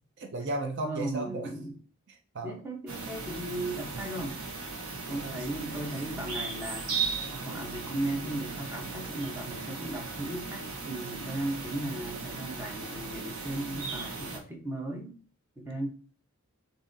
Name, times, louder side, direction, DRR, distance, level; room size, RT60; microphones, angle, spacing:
voice 1, 0.2-1.5 2.1-2.6 5.1-5.5, right 2 dB, 55° right, 5 dB, 0.6 m, -35 dB
voice 2, 0.8-1.7 2.4-4.4 5.1-7.0 7.3-15.2 15.6-15.9, right 1 dB, 10° right, 0 dB, 1.0 m, -36 dB
sound 1, 2.9-14.4, right 4 dB, 90° right, 1.2 m, -37 dB
7.0 x 2.8 x 2.7 m, 0.38 s
head